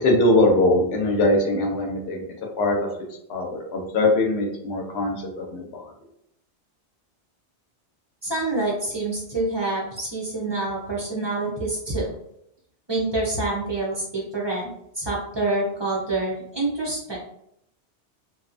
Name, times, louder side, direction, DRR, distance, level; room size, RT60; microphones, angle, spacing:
voice 1, 0.0-2.2 2.6-2.8 3.3-5.8, left 2 dB, 75° left, 1 dB, 0.9 m, -21 dB
voice 2, 8.2-12.1 12.9-17.2, right 2 dB, 40° right, -3 dB, 0.4 m, -27 dB
2.8 x 2.0 x 2.5 m, 0.76 s
omnidirectional pair, 1.1 m